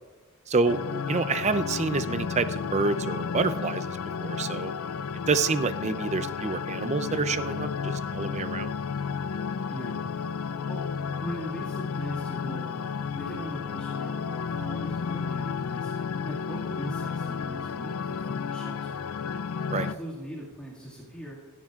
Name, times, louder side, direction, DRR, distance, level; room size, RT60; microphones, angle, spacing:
voice 1, 0.5-0.8 1.1-4.7 5.3-8.7 19.7-19.8, right 4 dB, 30° right, 12 dB, 0.5 m, -28 dB
sound 1, 0.7-19.9, left 6 dB, 70° left, 0.4 m, -32 dB
voice 2, 9.7-10.0 10.6-10.8 11.2-12.8 13.1-19.0 19.8-21.4, right 1 dB, 5° left, -7 dB, 2.0 m, -40 dB
16.0 x 13.5 x 2.4 m, 1.3 s
head